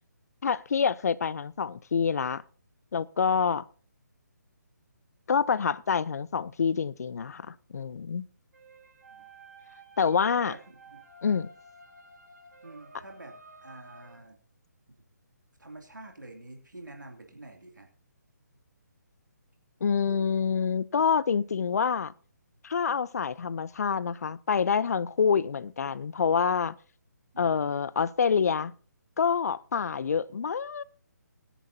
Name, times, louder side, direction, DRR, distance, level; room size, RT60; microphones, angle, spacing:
voice 1, 0.4-2.4 2.9-3.7 5.3-8.3 10.0-10.5 11.2-11.5 19.8-22.1 22.6-26.8 27.4-28.7 29.2-30.8, left 6 dB, 60° left, 0.6 m, -27 dB
sound 1, 8.5-14.2, right 2 dB, 65° right, 3.5 m, -52 dB
voice 2, 10.3-11.0 12.6-14.4 15.6-17.9 27.3-27.9, right 2 dB, 90° right, 2.7 m, -47 dB
21.0 x 10.0 x 2.8 m
figure-of-eight pair, 145°, 10 cm